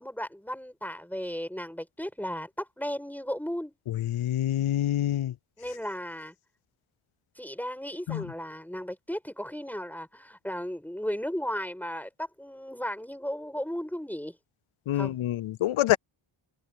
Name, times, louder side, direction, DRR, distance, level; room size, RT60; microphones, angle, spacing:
voice 1, 0.0-3.7 5.6-6.3 7.4-14.4 14.9-15.2, equal, 5° left, 7.4 m, -35 dB
voice 2, 4.0-5.3 8.1-8.2 14.9-16.0, left 13 dB, 85° left, 0.7 m, -26 dB
wide cardioid pair, 85°, 48 cm